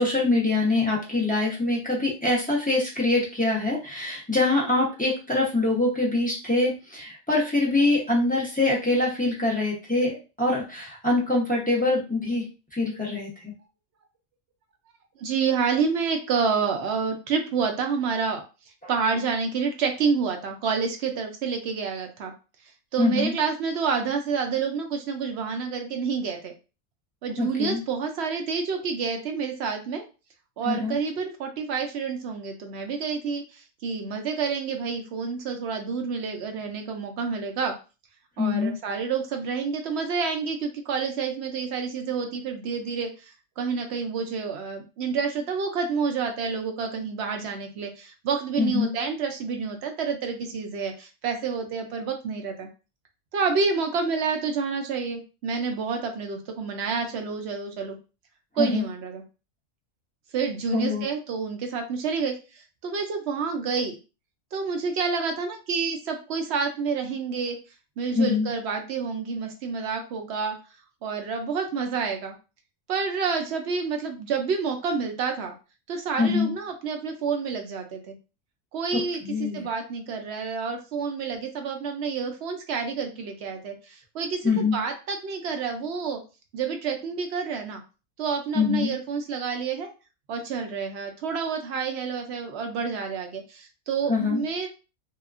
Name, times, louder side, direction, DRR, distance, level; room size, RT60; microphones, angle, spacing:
voice 1, 0.0-12.4 12.7-13.5 18.8-18.9 23.0-23.3 27.4-27.8 30.7-31.0 38.4-38.7 48.6-48.9 58.6-58.9 60.7-61.0 68.2-68.5 76.2-76.5 78.9-79.7 84.4-84.8 88.5-88.9 94.1-94.4, left 3 dB, 15° left, -6 dB, 0.3 m, -24 dB
voice 2, 15.2-18.4 18.9-22.3 22.9-26.5 27.2-30.0 30.6-37.7 38.4-43.3 43.6-52.7 53.3-58.0 58.6-59.2 60.3-63.9 64.5-67.6 68.0-70.6 71.0-72.3 72.9-75.5 75.9-78.2 78.7-86.2 86.5-87.8 88.2-89.9 90.3-94.7, right 5 dB, 65° right, 4 dB, 0.7 m, -28 dB
2.8 x 2.4 x 2.4 m, 0.31 s
omnidirectional pair, 1.5 m